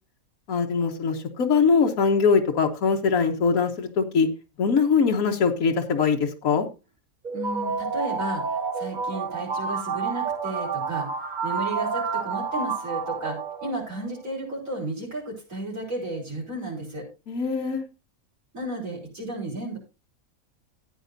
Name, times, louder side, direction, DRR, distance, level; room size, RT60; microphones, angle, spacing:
voice 1, 0.5-4.3 4.6-6.7 17.3-17.8, left 5 dB, 75° left, 3 dB, 1.6 m, -22 dB
sound 1, 7.2-14.1, right 5 dB, 35° right, 1.1 m, -29 dB
voice 2, 7.3-11.1 11.4-13.4 13.6-17.1 18.5-19.8, right 1 dB, 65° right, -1 dB, 5.4 m, -33 dB
14.5 x 9.2 x 2.7 m, 0.28 s
omnidirectional pair, 1.5 m